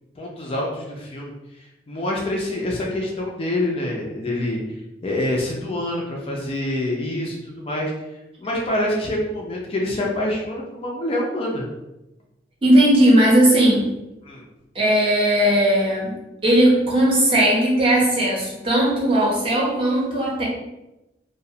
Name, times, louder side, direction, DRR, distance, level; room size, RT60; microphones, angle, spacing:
voice 1, 0.2-1.3 1.9-4.6 5.0-7.9 8.4-11.7 14.2-14.4, left 1 dB, 30° left, -2 dB, 0.3 m, -26 dB
voice 2, 12.6-13.9 14.7-16.1 16.4-20.4, right 1 dB, 30° right, -4 dB, 0.6 m, -17 dB
2.3 x 2.0 x 2.7 m, 0.96 s
head